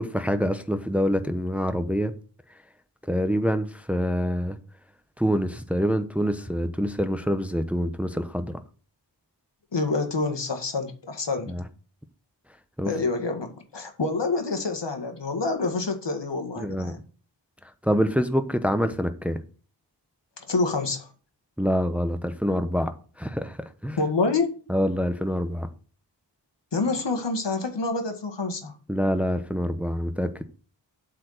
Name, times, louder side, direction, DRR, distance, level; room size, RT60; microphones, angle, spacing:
voice 1, 0.0-2.1 3.1-4.6 5.2-8.6 11.5-11.6 12.8-12.9 16.6-16.9 17.8-19.4 21.6-22.9 23.2-23.6 23.8-24.0 24.7-25.7 28.9-30.4, equal, 5° right, 0.9 m, -26 dB
voice 2, 9.7-11.5 12.9-17.0 20.5-21.1 24.0-24.5 26.7-28.7, left 3 dB, 65° left, 1.9 m, -27 dB
8.2 x 4.8 x 6.6 m
wide cardioid pair, 50°, 45 cm